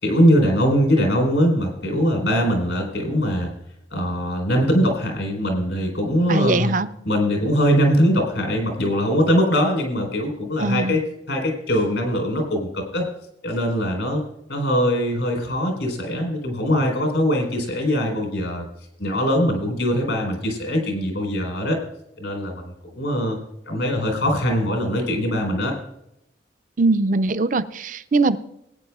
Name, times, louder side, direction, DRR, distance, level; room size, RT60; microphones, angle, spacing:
voice 1, 0.0-3.5 3.9-6.7 7.0-13.1 13.4-14.2 14.5-18.7 19.0-21.8 22.2-23.4 23.7-25.7, equal, 80° left, 4.3 m, -21 dB
voice 2, 6.3-6.9 10.6-11.0 26.8-28.4, right 3 dB, 45° right, 0.5 m, -21 dB
20.5 x 9.6 x 2.4 m
head